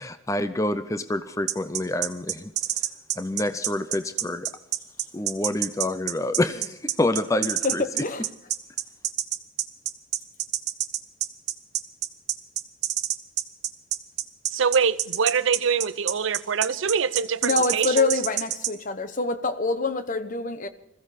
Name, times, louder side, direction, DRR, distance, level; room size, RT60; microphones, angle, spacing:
voice 1, 0.0-2.5 3.2-4.5 5.1-7.8, left 1 dB, 15° left, 0.6 m, -27 dB
sound 1, 1.5-18.7, right 13 dB, 55° right, 1.0 m, -27 dB
voice 2, 7.6-8.3 17.4-20.7, left 3 dB, 40° left, 0.9 m, -26 dB
voice 3, 14.5-18.1, right 6 dB, 75° right, 0.6 m, -24 dB
21.5 x 15.0 x 4.1 m
head